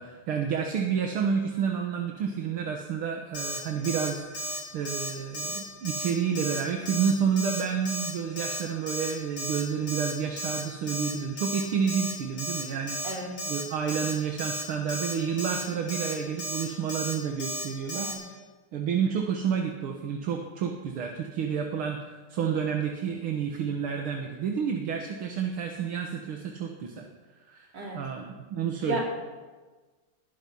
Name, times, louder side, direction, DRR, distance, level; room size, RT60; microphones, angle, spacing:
voice 1, 0.0-13.0 13.5-18.4 18.7-27.1 27.5-27.7 27.9-29.0, right 7 dB, 75° right, 2 dB, 2.2 m, -30 dB
Alarm, 3.3-3.6 3.8-4.1 4.3-4.6 4.9-5.1 5.3-5.6 5.8-6.1 6.4-6.6 6.9-7.1 7.4-7.6 7.9-8.1 8.4-8.6 8.9-9.1 9.4-9.6 9.9-10.1 10.4-10.6 10.9-11.1 11.4-11.6 11.9-12.1 12.4-12.6 12.9-13.1 13.4-13.6 13.9-14.1 14.4-14.6 14.9-15.1 15.4-15.6 15.9-16.1 16.4-16.6 16.9-17.1 17.4-17.6 17.9-18.1, right 1 dB, 65° left, 5.7 m, -33 dB
voice 2, 13.0-13.3 17.9-18.2 27.7-28.0 28.8-29.0, right 1 dB, 50° right, -3 dB, 4.5 m, -33 dB
21.0 x 12.0 x 5.5 m, 1.3 s
omnidirectional pair, 2.4 m